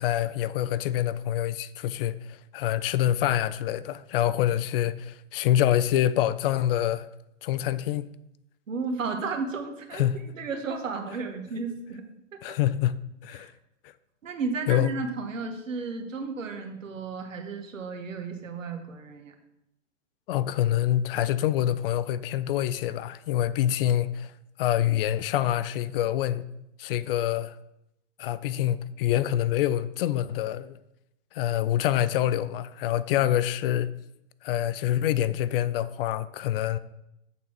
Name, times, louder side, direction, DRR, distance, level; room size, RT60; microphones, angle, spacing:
voice 1, 0.0-7.1 7.4-8.1 9.9-10.2 12.4-13.0 13.2-13.5 14.7-14.9 20.3-24.3 24.6-26.5 26.8-27.6 28.2-30.8 31.3-33.9 34.4-36.8, left 12 dB, 50° left, 0.5 m, -26 dB
voice 2, 8.7-10.1 10.4-12.1 12.3-12.6 13.3-13.5 14.2-19.3, right 4 dB, 85° right, 1.5 m, -33 dB
8.5 x 4.1 x 6.1 m
hypercardioid pair, 120°, 38 cm